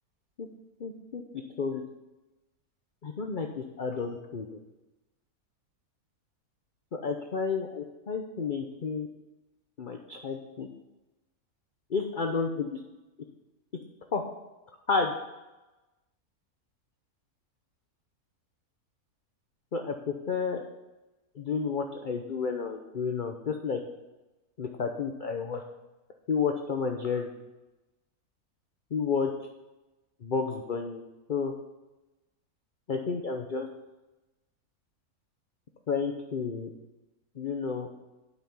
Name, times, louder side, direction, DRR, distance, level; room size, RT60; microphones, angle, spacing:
voice 1, 0.8-1.2 1.6-1.8 3.0-4.5 6.9-9.1 9.8-10.7 11.9-12.8 14.1-14.2 14.9-15.1 19.7-20.6 21.4-23.8 24.6-25.6 26.3-27.3 28.9-29.3 30.2-31.0 31.3-31.5 32.9-33.7 35.9-36.7 37.4-37.9, left 5 dB, 40° left, 3 dB, 0.8 m, -31 dB
11.5 x 5.9 x 7.0 m, 1.1 s
omnidirectional pair, 1.6 m